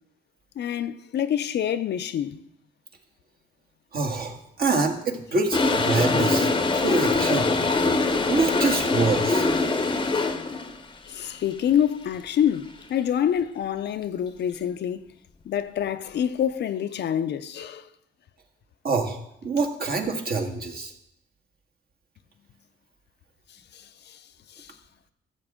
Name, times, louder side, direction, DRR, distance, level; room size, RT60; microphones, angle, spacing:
voice 1, 0.6-2.4 11.1-15.1 15.5-17.9 23.7-24.2 24.5-24.7, left 9 dB, 60° left, 0.6 m, -26 dB
voice 2, 3.9-7.5 8.3-9.5 18.8-20.9, right 3 dB, 50° right, 1.7 m, -26 dB
Toilet flush, 5.5-10.8, left 3 dB, 25° left, 0.8 m, -23 dB
13.5 x 7.4 x 3.6 m
cardioid pair, 90°, 20 cm